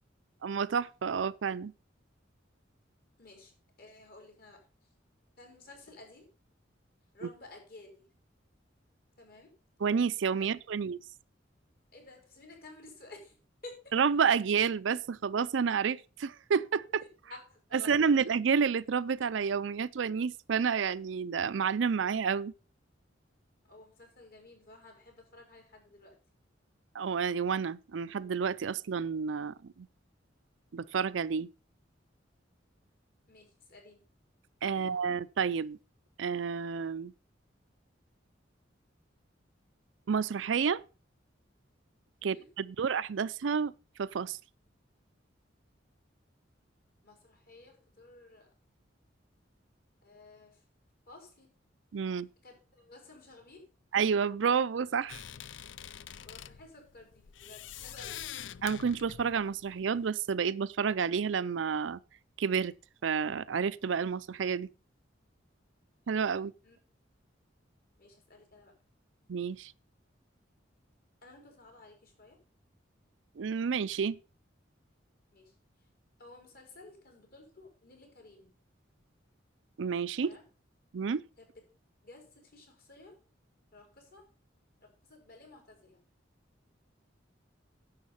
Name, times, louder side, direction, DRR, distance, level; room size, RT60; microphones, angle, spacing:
voice 1, 0.4-1.7 9.8-11.0 13.9-17.0 17.8-22.5 26.9-29.9 30.7-31.5 34.6-35.8 36.2-37.1 40.1-40.8 42.2-43.7 44.0-44.4 51.9-52.3 53.9-55.2 58.6-62.0 62.4-62.7 63.0-64.7 66.1-66.5 69.3-69.7 73.4-74.2 79.8-80.3 80.9-81.2, right 6 dB, 75° right, 0.5 m, -30 dB
voice 2, 3.2-4.7 5.4-6.3 7.1-8.1 9.2-9.5 10.4-10.6 11.9-13.4 13.6-13.9 17.2-18.3 23.6-26.2 33.3-34.1 34.7-34.9 42.2-42.5 47.0-48.5 50.0-50.6 51.1-51.5 52.0-53.7 56.2-58.3 66.6-66.8 68.0-68.7 71.2-72.4 75.3-75.9 76.2-78.5 80.2-80.4 81.4-81.5 82.0-83.2 83.7-84.3 84.8-86.0, left 2 dB, 55° left, 4.8 m, -54 dB
sound 1, 55.1-60.1, left 10 dB, 75° left, 0.5 m, -45 dB
10.5 x 7.3 x 5.5 m
head